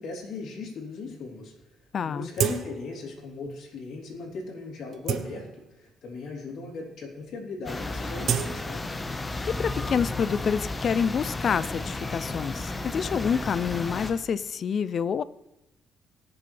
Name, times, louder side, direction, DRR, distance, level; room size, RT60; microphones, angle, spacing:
voice 1, 0.0-1.5 2.0-8.8, left 3 dB, 75° left, -1 dB, 3.2 m, -38 dB
sound 1, 1.3-1.4 1.6-1.7 2.3-3.0 3.4-3.6 4.2-4.4 4.8-5.9 6.6-6.7 7.0-7.3 7.6-9.4 9.7-11.7, right 8 dB, 70° right, 0.8 m, -33 dB
voice 2, 1.9-2.3 9.5-15.2, left 7 dB, 55° left, 17 dB, 0.5 m, -27 dB
sound 2, 7.6-14.1, left 2 dB, 25° left, 1.2 m, -33 dB
20.5 x 6.9 x 3.4 m, 0.93 s
cardioid pair, 90°, 0 cm